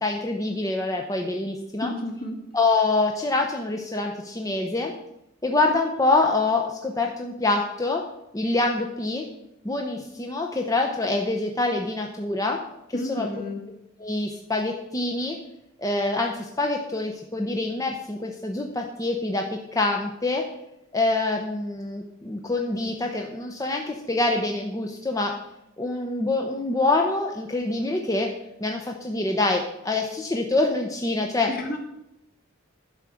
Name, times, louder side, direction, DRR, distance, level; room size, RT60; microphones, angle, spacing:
voice 1, 0.0-1.9 2.5-4.9 5.4-8.0 8.3-9.2 9.6-12.6 12.9-13.3 14.0-15.4 15.8-19.4 19.7-20.4 20.9-25.3 25.8-28.3 28.6-31.5, left 2 dB, 15° left, 2 dB, 0.8 m, -25 dB
voice 2, 1.8-2.4 12.9-13.6 31.5-31.8, left 1 dB, 45° left, 2 dB, 1.8 m, -31 dB
11.0 x 4.9 x 7.1 m, 0.85 s
head